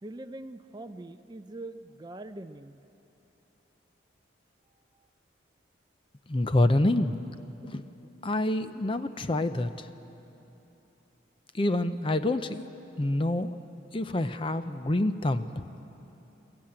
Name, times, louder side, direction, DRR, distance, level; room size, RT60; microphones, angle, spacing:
voice 1, 0.0-2.8 4.9-5.1, right 2 dB, 20° right, 10 dB, 0.4 m, -43 dB
voice 2, 6.3-7.2 7.6-7.9 8.2-9.9 11.5-12.7 13.0-13.6 13.9-15.6, left 1 dB, 25° left, 10 dB, 0.5 m, -27 dB
22.5 x 14.0 x 8.8 m, 3.0 s
head